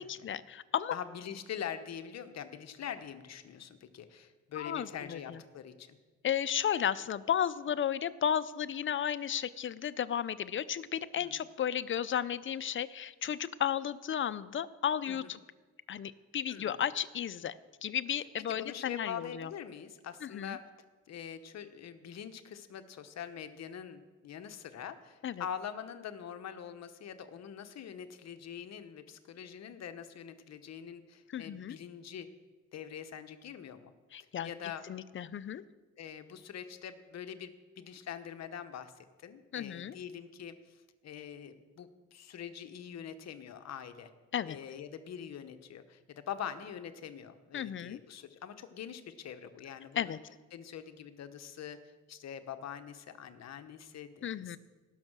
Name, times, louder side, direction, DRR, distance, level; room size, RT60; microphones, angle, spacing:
voice 1, 0.0-1.0 4.6-5.4 6.2-15.4 15.9-19.5 20.2-20.6 25.2-25.4 31.3-31.8 34.1-34.5 34.9-35.6 39.5-40.0 44.3-44.6 47.5-48.0 50.0-50.2 54.2-54.6, left 9 dB, 40° left, 16 dB, 0.5 m, -34 dB
voice 2, 0.9-6.0 11.2-11.5 15.1-15.4 16.5-16.8 18.5-20.7 21.1-32.3 32.7-33.9 34.4-34.8 36.0-44.1 44.4-50.2 50.5-51.8 52.1-54.6, left 8 dB, 60° left, 9 dB, 1.0 m, -44 dB
17.5 x 6.5 x 6.2 m, 1.3 s
cardioid pair, 90°, 30 cm